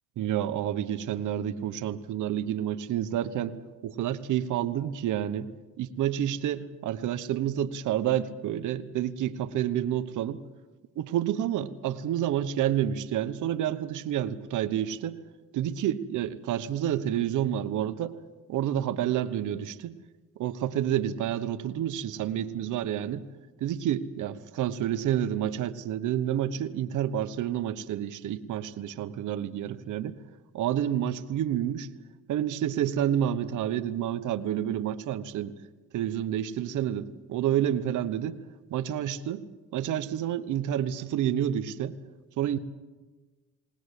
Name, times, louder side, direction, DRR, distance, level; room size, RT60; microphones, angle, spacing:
voice 1, 0.2-3.6 3.8-5.5 5.8-10.4 11.0-15.2 15.5-18.1 18.5-20.0 20.4-23.2 23.6-30.2 30.5-31.9 32.3-35.5 35.9-38.4 38.7-39.4 39.7-41.9 42.4-42.6, right 11 dB, 80° right, 10 dB, 1.1 m, -29 dB
20.5 x 19.5 x 8.3 m, 1.3 s
cardioid pair, 90°, 30 cm